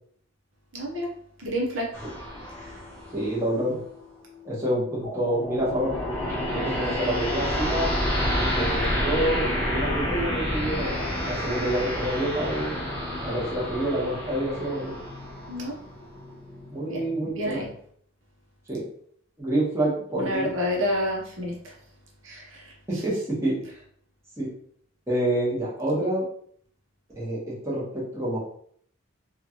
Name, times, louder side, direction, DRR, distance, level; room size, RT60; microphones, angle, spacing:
voice 1, 0.7-1.1 1.4-1.9 2.6-2.8 15.5-15.8 16.9-17.7 20.2-21.7 22.2-22.7, equal, 75° right, -1 dB, 0.8 m, -29 dB
sound 1, 1.9-3.9 5.0-17.3, equal, 10° left, 0.7 m, -29 dB
voice 2, 3.1-3.8 4.4-5.9 6.5-7.9 8.5-12.7 13.2-15.0 16.7-17.6 18.7-18.9 19.4-20.5 22.9-23.6 24.4-24.5 25.1-26.3 27.1-28.4, right 1 dB, 15° right, -7 dB, 1.0 m, -27 dB
3.0 x 2.4 x 2.8 m, 0.62 s
head